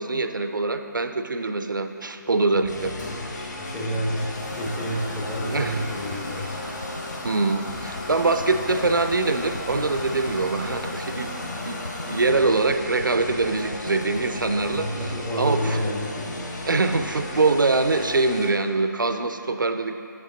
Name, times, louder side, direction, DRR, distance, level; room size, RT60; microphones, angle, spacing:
voice 1, 0.0-2.9 5.5-5.8 7.2-11.3 11.6-15.8 16.7-19.9, right 3 dB, 80° right, 8 dB, 0.4 m, -24 dB
voice 2, 2.3-6.6 14.7-16.7, equal, 10° left, -3 dB, 0.6 m, -30 dB
sound 1, 2.6-12.3, left 1 dB, 25° left, 1.3 m, -40 dB
sound 2, 2.7-18.5, left 1 dB, 65° left, 1.0 m, -35 dB
sound 3, 3.8-16.0, left 2 dB, 90° left, 0.6 m, -40 dB
7.2 x 5.2 x 3.9 m, 2.6 s
figure-of-eight pair, 145°, 10 cm